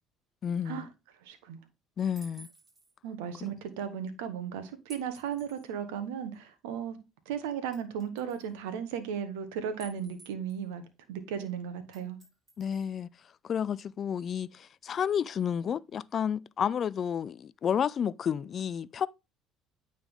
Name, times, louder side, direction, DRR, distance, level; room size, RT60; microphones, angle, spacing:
voice 1, 0.4-0.9 2.0-2.5 3.4-3.6 12.6-13.1 13.4-19.1, left 8 dB, 45° left, 0.3 m, -31 dB
voice 2, 1.2-1.6 3.0-7.0 7.3-10.8 11.1-12.2, right 8 dB, 85° right, 1.0 m, -36 dB
sound 1, 2.2-2.9 4.9-5.7 6.3-6.4 7.7-8.5 9.8-10.7 11.9-13.0, right 2 dB, 45° right, 4.2 m, -54 dB
8.9 x 3.7 x 3.5 m
supercardioid pair, 80°, 0 cm